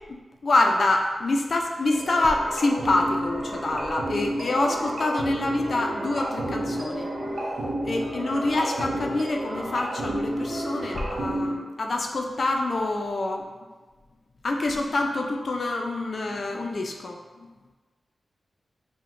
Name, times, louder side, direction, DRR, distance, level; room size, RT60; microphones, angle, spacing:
voice 1, 0.1-7.1 7.8-13.5 14.4-17.2, left 2 dB, 60° left, 2 dB, 0.4 m, -26 dB
sound 1, 1.9-11.6, right 1 dB, 65° right, 0.7 m, -30 dB
5.6 x 2.1 x 2.5 m, 1.3 s
wide cardioid pair, 75°, 0 cm